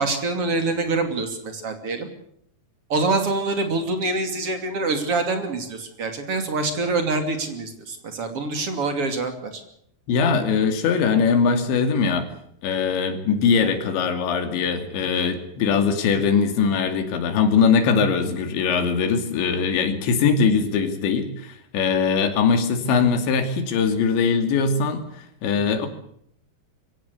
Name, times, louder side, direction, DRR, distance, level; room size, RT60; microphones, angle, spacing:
voice 1, 0.0-2.1 2.9-9.6, right 3 dB, 35° right, 7 dB, 3.2 m, -25 dB
voice 2, 10.1-12.3 12.6-25.9, left 5 dB, 85° left, 8 dB, 4.8 m, -21 dB
23.0 x 17.5 x 8.2 m, 0.68 s
omnidirectional pair, 5.1 m